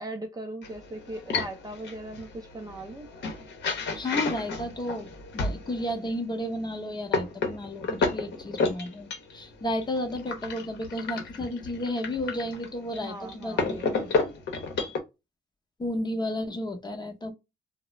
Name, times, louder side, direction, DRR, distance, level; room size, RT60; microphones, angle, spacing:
voice 1, 0.0-3.1 13.0-14.1 14.8-15.0, right 1 dB, 20° right, 0.4 m, -39 dB
sound 1, 0.6-5.9 6.5-15.0, left 4 dB, 60° left, 0.7 m, -32 dB
voice 2, 4.0-13.8 15.8-17.3, left 1 dB, 20° left, 0.6 m, -32 dB
2.3 x 2.0 x 3.0 m
cardioid pair, 90°, 20 cm